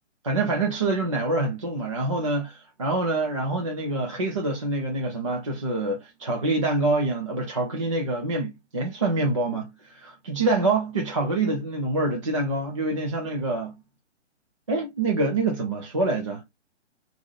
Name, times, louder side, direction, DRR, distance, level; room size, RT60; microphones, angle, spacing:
voice 1, 0.2-13.8 14.7-16.4, right 2 dB, 25° right, 0.4 m, -26 dB
2.6 x 2.5 x 3.1 m
figure-of-eight pair, 140°, 37 cm